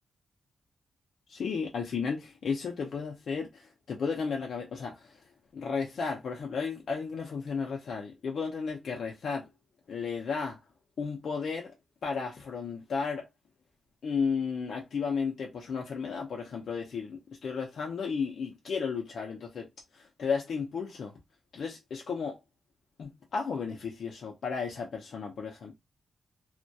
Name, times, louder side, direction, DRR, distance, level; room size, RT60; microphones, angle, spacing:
voice 1, 1.3-5.2 5.5-9.5 9.9-10.6 11.0-11.7 12.0-13.3 14.0-19.7 19.9-21.1 21.5-22.4 23.0-25.7, left 5 dB, 60° left, 0.4 m, -33 dB
2.2 x 2.1 x 2.6 m
wide cardioid pair, 135°, 0 cm